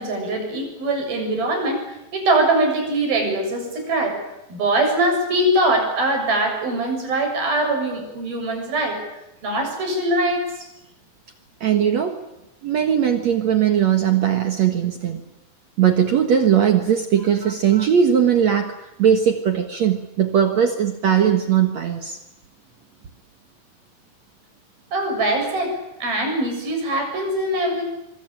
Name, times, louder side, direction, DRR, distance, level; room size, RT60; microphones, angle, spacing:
voice 1, 0.0-4.2 4.5-9.0 9.4-10.7 24.9-27.8, right 1 dB, 85° right, 3 dB, 9.2 m, -22 dB
voice 2, 11.6-12.2 12.6-15.2 15.8-18.7 19.0-22.2, right 8 dB, 55° right, 6 dB, 2.5 m, -19 dB
26.0 x 22.0 x 8.9 m, 0.94 s
omnidirectional pair, 4.1 m